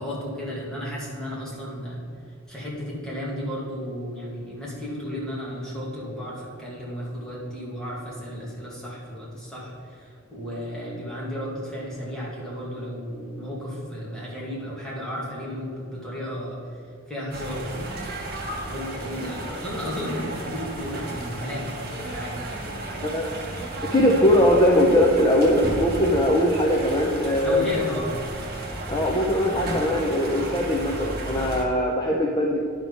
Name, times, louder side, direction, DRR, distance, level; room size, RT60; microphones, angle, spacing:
voice 1, 0.0-2.0 2.5-16.6 17.1-17.9 18.7-22.4 27.4-28.1, equal, 5° left, -7 dB, 2.3 m, -33 dB
sound 1, 17.3-31.6, right 1 dB, 45° right, 1.5 m, -33 dB
voice 2, 23.0-23.3 23.8-27.6 28.9-32.6, left 1 dB, 20° left, -1 dB, 0.7 m, -21 dB
11.0 x 4.7 x 5.4 m, 2.4 s
head